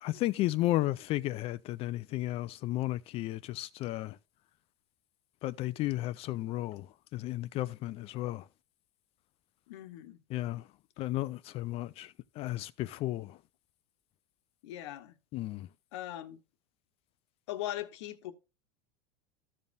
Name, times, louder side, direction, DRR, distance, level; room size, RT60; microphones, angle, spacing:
voice 1, 0.0-4.2 5.4-6.9 7.1-8.4 10.3-10.6 11.0-13.4 15.3-15.7, left 16 dB, 40° left, 0.4 m, -33 dB
voice 2, 9.7-10.2 14.6-15.1 15.9-16.4 17.5-18.3, left 14 dB, 75° left, 1.1 m, -40 dB
14.5 x 5.4 x 2.6 m
supercardioid pair, 120°, 15 cm